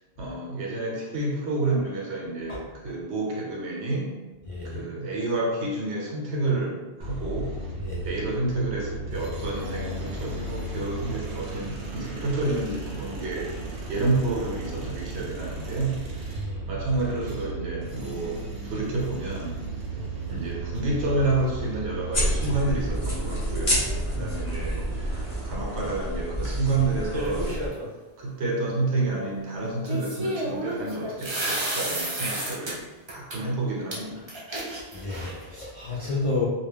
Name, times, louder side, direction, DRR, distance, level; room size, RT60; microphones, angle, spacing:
voice 1, 0.2-4.2 4.6-7.5 8.0-13.6 13.9-16.0 16.7-19.6 20.3-23.8 24.1-24.8 25.4-27.6 28.2-32.8 33.1-34.3, right 2 dB, 90° right, -3 dB, 1.0 m, -29 dB
voice 2, 4.5-4.8 7.8-8.1 16.4-16.7 24.2-24.3 34.9-36.5, left 3 dB, 65° left, -6 dB, 0.3 m, -30 dB
sound 1, 7.0-25.5, right 3 dB, 65° right, 0.8 m, -35 dB
sound 2, 22.1-27.7, equal, 35° left, 0.7 m, -29 dB
sound 3, 27.1-27.9 29.9-32.7 33.1-33.4 33.9-34.0 34.3-35.5, right 1 dB, 35° right, 0.4 m, -31 dB
2.3 x 2.2 x 3.4 m, 1.1 s
omnidirectional pair, 1.1 m